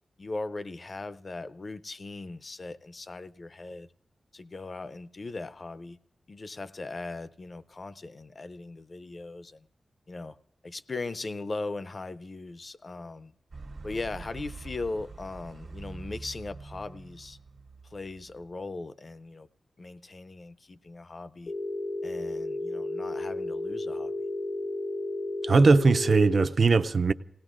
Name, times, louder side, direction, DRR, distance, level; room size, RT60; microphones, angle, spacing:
voice 1, 0.2-3.9 4.3-6.0 6.3-9.7 10.1-10.4 10.6-13.3 13.8-17.4 17.8-19.5 19.8-21.5 22.0-24.1, left 3 dB, 45° left, 0.5 m, -39 dB
sound 1, 13.5-18.5, right 3 dB, 75° right, 1.3 m, -45 dB
Telephone, 21.5-26.5, left 2 dB, 80° left, 0.8 m, -33 dB
voice 2, 25.4-27.1, right 4 dB, 55° right, 0.4 m, -20 dB
28.0 x 18.0 x 2.5 m
wide cardioid pair, 105°, 0 cm